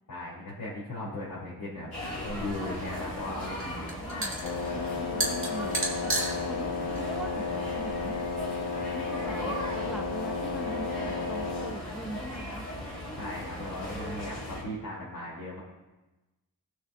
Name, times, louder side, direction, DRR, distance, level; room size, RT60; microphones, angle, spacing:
voice 1, 0.1-1.9 2.2-3.9 13.2-15.6, left 1 dB, 70° left, -8 dB, 2.6 m, -37 dB
sound 1, 1.9-14.6, left 1 dB, 40° left, 3.4 m, -38 dB
sound 2, 2.2-8.4, right 2 dB, 30° right, 1.8 m, -35 dB
voice 2, 3.5-4.4 4.7-6.1 6.4-8.2 8.9-12.6, right 1 dB, ahead, 1 dB, 1.0 m, -41 dB
Wind instrument woodwind instrument, 4.4-11.8, left 4 dB, 85° left, 0.6 m, -33 dB
18.0 x 6.4 x 2.4 m, 1.1 s
wide cardioid pair, 145°, 39 cm